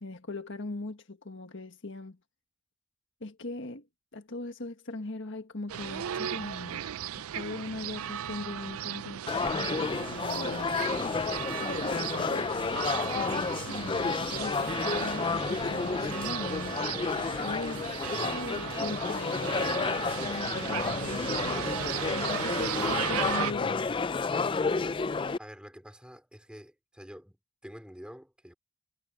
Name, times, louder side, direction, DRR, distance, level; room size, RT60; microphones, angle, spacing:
voice 1, 0.0-2.2 3.2-3.8 4.1-12.6 13.0-16.8 17.1-23.9, left 2 dB, 55° left, 1.6 m, -40 dB
sound 1, 5.7-23.5, right 10 dB, 70° right, 0.4 m, -36 dB
sound 2, 9.3-25.4, left 4 dB, 20° left, 0.3 m, -31 dB
voice 2, 25.4-27.4 27.6-28.5, equal, 5° right, 4.2 m, -47 dB
head